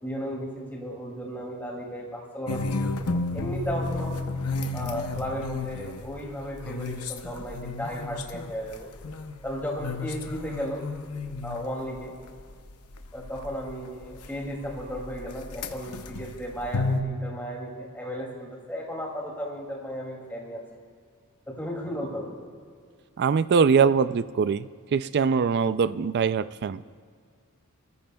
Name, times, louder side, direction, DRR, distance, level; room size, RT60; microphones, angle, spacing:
voice 1, 0.0-2.6 3.1-4.2 4.7-8.9 9.4-10.8 11.4-12.1 13.1-20.6 21.5-22.3, equal, 10° left, -2 dB, 2.5 m, -35 dB
sound 1, 2.5-9.5 9.8-13.7 14.0-17.0, left 3 dB, 80° left, 0.8 m, -32 dB
voice 2, 23.2-26.8, right 6 dB, 50° right, 15 dB, 0.3 m, -23 dB
24.0 x 14.0 x 2.3 m, 2.1 s
head